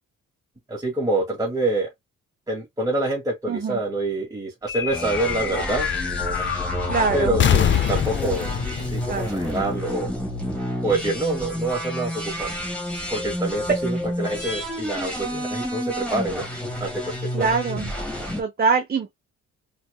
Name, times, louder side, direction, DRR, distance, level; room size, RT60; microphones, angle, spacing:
voice 1, 0.7-1.9 2.5-5.9 7.1-8.5 8.9-10.1 10.8-12.5 13.1-16.5 16.8-17.5, right 2 dB, 10° right, 2.1 m, -26 dB
voice 2, 3.5-3.8 6.9-7.4 9.1-9.4 13.7-13.8 17.3-17.9 18.4-19.1, right 5 dB, 30° right, 0.8 m, -23 dB
sound 1, 4.7-10.4, left 9 dB, 40° left, 0.6 m, -25 dB
sound 2, 4.9-18.4, equal, 5° left, 2.1 m, -30 dB
4.3 x 3.2 x 2.3 m
cardioid pair, 90°, 30 cm